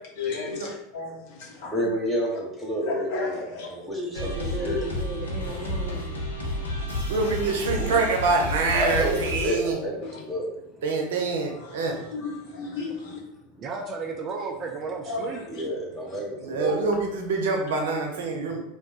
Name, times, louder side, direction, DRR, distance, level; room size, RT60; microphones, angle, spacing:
voice 1, 0.2-1.7 2.9-3.7 10.0-10.1 11.5-13.2 15.1-15.3 16.7-16.8, left 3 dB, 55° left, -2 dB, 1.1 m, -33 dB
voice 2, 1.4-4.8 5.7-6.1 6.5-7.2 8.7-10.5 15.5-16.9, equal, 5° left, -3 dB, 1.2 m, -30 dB
voice 3, 3.7-6.4 7.7-8.1 13.6-15.4 18.5-18.6, right 3 dB, 35° right, 3 dB, 0.5 m, -35 dB
sound 1, 4.1-9.5, left 1 dB, 80° left, 0.8 m, -31 dB
voice 4, 7.1-9.8 10.8-11.9 16.4-18.6, right 3 dB, 65° right, 2 dB, 0.8 m, -25 dB
3.5 x 2.5 x 3.8 m, 0.84 s
figure-of-eight pair, 80°, 0 cm